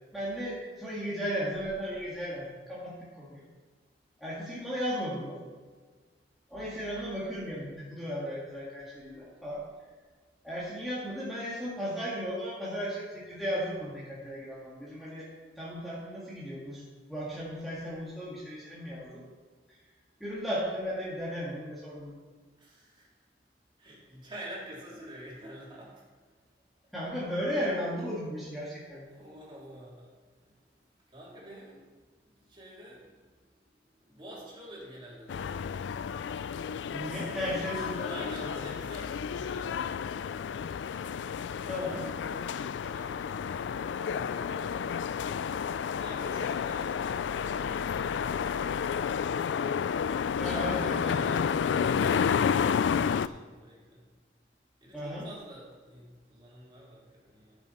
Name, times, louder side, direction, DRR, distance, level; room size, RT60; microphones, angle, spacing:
voice 1, 0.1-3.5 4.2-5.4 6.5-9.6 10.4-15.3 15.6-16.8 17.1-19.2 20.2-22.1 26.9-29.1 36.9-38.5 41.7-42.1 50.4-51.5 54.9-55.3, equal, ahead, -9 dB, 2.0 m, -35 dB
voice 2, 22.6-23.1 23.8-26.0 29.1-30.5 31.1-31.9 32.2-33.5 33.8-35.7 37.5-37.6 38.0-39.9 42.2-43.7 44.1-45.4 46.0-48.7 51.0-54.1 54.8-57.7, equal, 30° right, -6 dB, 3.3 m, -48 dB
sound 1, 35.3-53.3, left 7 dB, 85° left, 0.3 m, -31 dB
14.5 x 7.1 x 4.3 m, 1.4 s
head